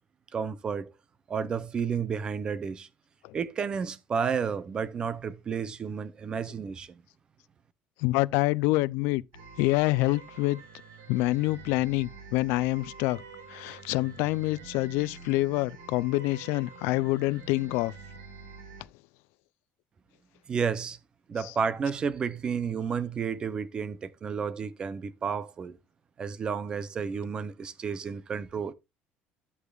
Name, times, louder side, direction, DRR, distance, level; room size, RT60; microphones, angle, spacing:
voice 1, 0.3-0.9 1.3-2.9 3.3-6.9 20.5-21.0 21.3-25.8 26.2-28.7, right 6 dB, 25° right, 0.6 m, -31 dB
voice 2, 8.0-9.2 9.6-10.6 11.1-13.2 13.5-17.9 21.4-21.5, left 20 dB, 85° left, 0.4 m, -26 dB
sound 1, 9.3-18.8, right 4 dB, 85° right, 3.9 m, -47 dB
11.0 x 8.3 x 2.3 m
cardioid pair, 180°, 4 cm